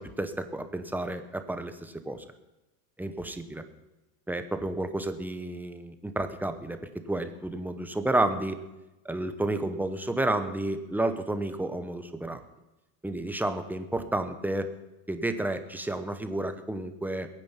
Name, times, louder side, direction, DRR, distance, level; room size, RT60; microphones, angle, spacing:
voice 1, 0.0-2.2 3.0-3.6 4.3-8.6 9.0-12.4 13.0-14.7 15.1-17.3, right 1 dB, 5° right, 8 dB, 0.8 m, -31 dB
21.5 x 9.1 x 5.8 m, 1.0 s
supercardioid pair, 140°, 46 cm